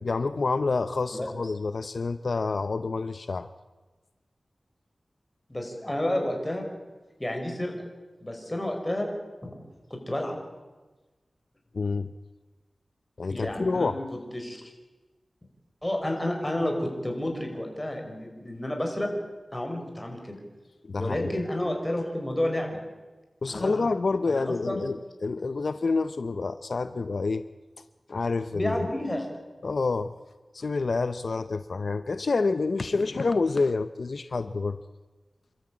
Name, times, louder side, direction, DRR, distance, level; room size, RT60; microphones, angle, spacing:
voice 1, 0.0-3.5 11.7-12.1 13.2-14.0 20.8-21.3 23.4-27.4 28.1-28.9 29.6-30.1 30.5-34.8, left 3 dB, 70° left, 11 dB, 0.6 m, -28 dB
voice 2, 5.5-6.6 7.2-7.7 8.2-9.1 9.4-9.6 9.9-10.4 13.3-14.6 15.8-19.1 19.5-20.4 21.0-22.8 23.5-23.8 24.3-24.8 28.5-29.3, left 1 dB, 20° left, 2 dB, 5.5 m, -30 dB
28.0 x 13.5 x 8.7 m, 1.2 s
wide cardioid pair, 60°, 0 cm